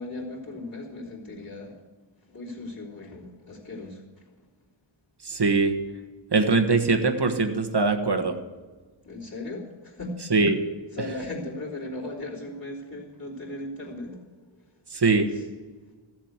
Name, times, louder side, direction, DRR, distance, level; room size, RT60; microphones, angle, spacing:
voice 1, 0.0-1.8 2.3-4.0 9.0-10.2 10.9-14.2 15.3-15.4, left 2 dB, 40° left, -9 dB, 3.7 m, -37 dB
voice 2, 5.2-5.8 6.3-8.3 10.3-10.6 14.9-15.3, right 3 dB, 55° right, 6 dB, 1.4 m, -22 dB
15.0 x 7.6 x 8.1 m, 1.4 s
wide cardioid pair, 70°, 47 cm